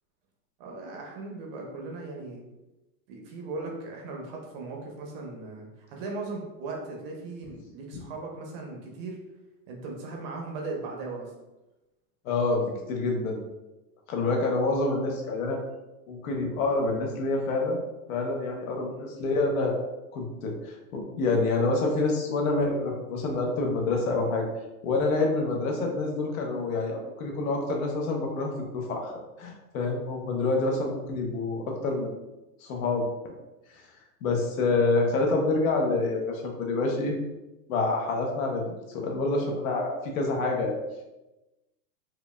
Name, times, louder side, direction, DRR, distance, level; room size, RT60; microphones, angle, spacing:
voice 1, 0.6-2.4 3.1-9.2 9.7-11.3 18.9-19.1 39.3-39.6, right 3 dB, 40° right, 0 dB, 0.8 m, -38 dB
voice 2, 12.2-13.4 14.1-15.6 16.1-17.8 18.1-19.8 20.1-24.5 24.8-29.1 29.4-32.1 32.6-33.0 34.2-37.2 37.7-38.6 38.9-40.8, left 3 dB, 60° left, 1 dB, 1.0 m, -27 dB
4.8 x 2.5 x 2.2 m, 1.0 s
hypercardioid pair, 140°, 48 cm